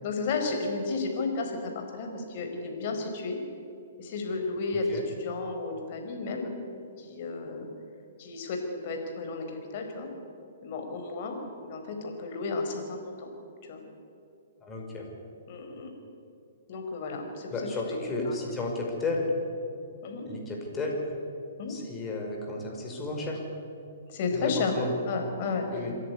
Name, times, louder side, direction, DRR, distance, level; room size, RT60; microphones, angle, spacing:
voice 1, 0.0-3.4 4.0-6.5 7.0-7.7 8.2-9.5 9.7-10.1 10.6-11.4 11.6-13.3 13.6-13.8 15.5-15.9 16.7-17.5 17.9-18.5 20.0-20.2 21.6-21.7 24.1-24.7 25.1-26.0, left 3 dB, 50° left, 3 dB, 4.7 m, -33 dB
voice 2, 4.7-5.0 14.6-15.1 17.5-19.3 20.3-21.0 21.7-23.4 24.3-24.9 25.7-26.0, left 2 dB, 20° left, 0 dB, 5.4 m, -33 dB
27.5 x 11.0 x 9.8 m, 2.6 s
figure-of-eight pair, 120°, 0 cm